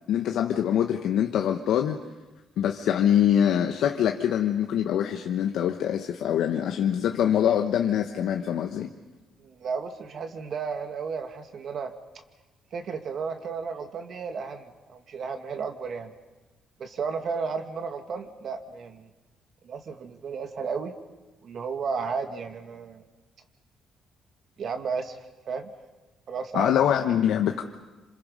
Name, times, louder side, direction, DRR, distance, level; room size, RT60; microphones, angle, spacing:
voice 1, 0.0-2.0 2.6-8.9 26.5-27.6, left 9 dB, 80° left, 4 dB, 1.2 m, -24 dB
voice 2, 9.4-11.9 12.7-16.1 16.8-19.1 19.6-20.9 21.4-23.0 24.6-25.2 25.5-25.7 26.3-26.7, right 5 dB, 60° right, 6 dB, 2.3 m, -33 dB
27.5 x 26.5 x 5.5 m, 1.2 s
cardioid pair, 90°, 0 cm